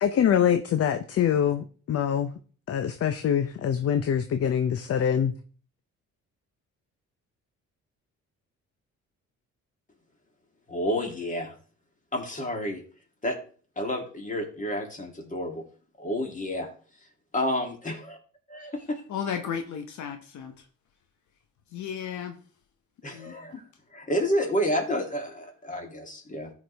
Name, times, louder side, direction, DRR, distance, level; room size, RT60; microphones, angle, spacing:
voice 1, 0.0-2.3 2.7-5.3, left 8 dB, 50° left, 0.7 m, -24 dB
voice 2, 10.7-11.5 12.1-12.8 13.2-13.4 13.8-15.6 16.0-16.7 17.3-18.2 18.5-19.0 23.0-23.6 23.9-26.5, equal, 25° left, 2.8 m, -30 dB
voice 3, 19.1-20.7 21.7-22.4 23.1-23.4, left 8 dB, 70° left, 1.1 m, -34 dB
14.0 x 5.0 x 3.5 m
cardioid pair, 90°, 30 cm